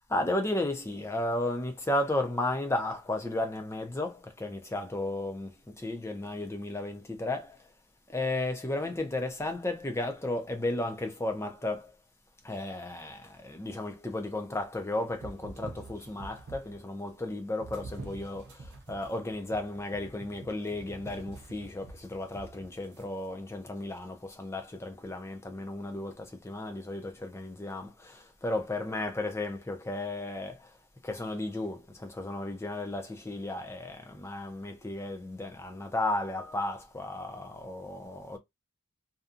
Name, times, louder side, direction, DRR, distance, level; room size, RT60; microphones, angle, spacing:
voice 1, 0.1-7.7 8.1-11.9 12.4-30.7 31.0-38.4, left 2 dB, 10° left, 0.4 m, -34 dB
sound 1, 15.1-16.9 17.6-23.0, right 3 dB, 50° right, 0.5 m, -46 dB
2.6 x 2.3 x 2.4 m
head